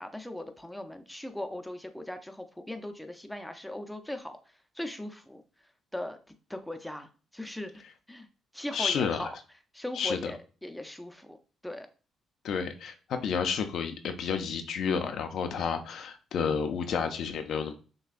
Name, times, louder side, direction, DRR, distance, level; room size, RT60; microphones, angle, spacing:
voice 1, 0.0-4.4 4.7-5.4 5.9-6.2 6.5-7.8 8.1-8.3 8.5-9.4 9.7-11.4 11.6-11.9, left 1 dB, 5° left, 6 dB, 0.6 m, -39 dB
voice 2, 8.7-9.3 9.9-10.3 12.4-17.7, left 6 dB, 70° left, 7 dB, 0.5 m, -30 dB
6.4 x 2.3 x 2.4 m, 0.36 s
cardioid pair, 90°, 0 cm